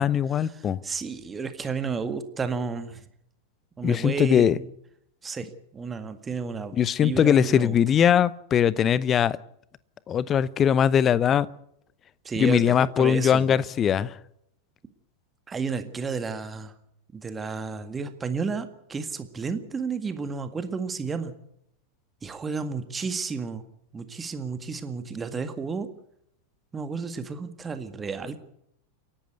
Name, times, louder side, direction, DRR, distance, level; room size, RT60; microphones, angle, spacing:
voice 1, 0.0-0.8 3.8-4.6 6.7-9.4 10.1-11.5 12.4-14.2, left 9 dB, 25° left, 0.7 m, -21 dB
voice 2, 0.5-3.0 3.8-4.7 5.2-7.8 12.2-13.6 15.5-16.7 17.1-21.3 22.2-23.6 23.9-25.9 26.7-28.4, right 5 dB, 15° right, 1.9 m, -32 dB
29.0 x 11.5 x 8.1 m
figure-of-eight pair, 90°, 0 cm